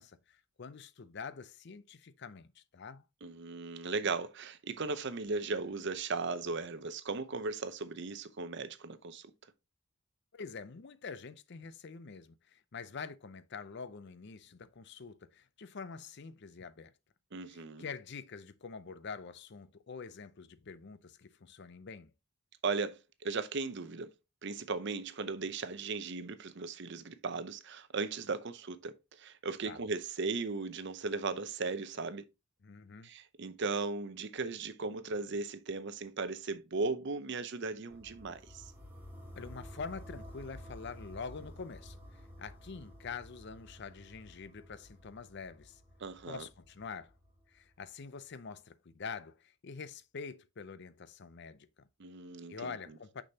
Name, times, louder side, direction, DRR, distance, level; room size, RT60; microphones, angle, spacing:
voice 1, 0.0-3.1 10.3-16.9 17.5-22.1 29.6-29.8 32.6-33.1 39.3-45.8 46.3-47.1 47.5-51.9 52.5-53.2, left 5 dB, 55° left, 0.5 m, -46 dB
voice 2, 3.2-9.5 17.3-17.8 22.6-24.1 24.4-32.2 33.0-38.7 46.0-46.4 52.0-52.8, right 4 dB, 55° right, 0.6 m, -37 dB
sound 1, 37.9-47.8, equal, 10° right, 1.9 m, -52 dB
6.3 x 6.1 x 2.8 m
head